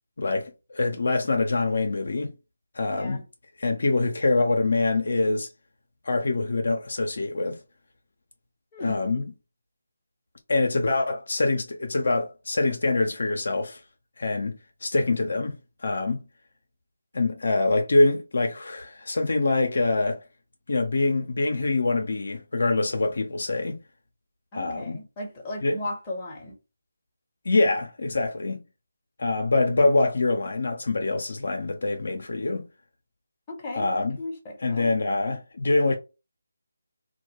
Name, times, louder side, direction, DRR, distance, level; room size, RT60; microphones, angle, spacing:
voice 1, 0.2-2.3 2.7-3.2 3.6-5.5 6.0-7.6 8.8-9.3 10.5-13.8 14.2-15.5 15.8-16.2 17.1-20.2 20.7-23.8 24.5-25.0 25.6-25.8 27.4-28.6 29.2-32.7 33.7-34.2 34.6-36.0, left 2 dB, 60° left, 0.5 m, -24 dB
voice 2, 24.5-26.5 33.5-34.9, left 1 dB, 20° left, 0.8 m, -36 dB
2.2 x 2.2 x 3.0 m
figure-of-eight pair, 160°, 0 cm